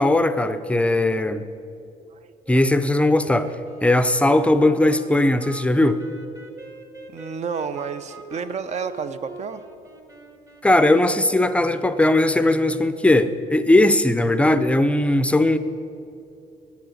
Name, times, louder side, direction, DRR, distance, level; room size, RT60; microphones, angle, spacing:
voice 1, 0.0-1.4 2.5-3.5 3.8-6.0 10.6-15.6, left 1 dB, 5° left, 12 dB, 0.5 m, -18 dB
Wind instrument woodwind instrument, 2.4-11.9, right 2 dB, 20° right, 1.1 m, -43 dB
voice 2, 7.1-9.7, right 6 dB, 40° right, 11 dB, 0.6 m, -30 dB
10.5 x 8.6 x 6.4 m, 2.6 s
cardioid pair, 110°, 17 cm